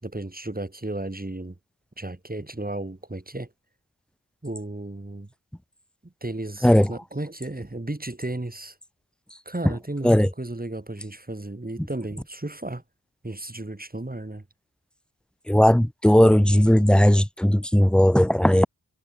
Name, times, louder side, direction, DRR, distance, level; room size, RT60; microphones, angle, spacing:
voice 1, 0.0-1.6 2.0-3.5 4.4-5.3 6.0-8.8 9.5-12.8 13.2-14.4, right 2 dB, 25° right, 5.8 m, -34 dB
voice 2, 15.5-18.7, equal, ahead, 0.6 m, -17 dB
wide cardioid pair, 75°, 37 cm